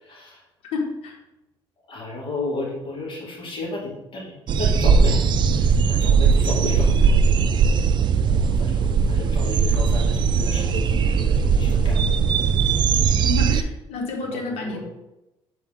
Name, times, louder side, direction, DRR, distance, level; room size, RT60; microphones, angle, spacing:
voice 1, 0.1-0.4 1.9-5.3 5.5-7.2 8.4-12.1 13.0-13.2 14.3-14.8, left 2 dB, 55° left, -4 dB, 2.3 m, -33 dB
voice 2, 0.6-1.2 13.2-14.8, left 3 dB, 85° left, 1 dB, 1.3 m, -29 dB
sound 1, 4.5-13.6, right 5 dB, 50° right, 0.4 m, -19 dB
7.0 x 4.4 x 3.7 m, 0.95 s
cardioid pair, 105°, 10 cm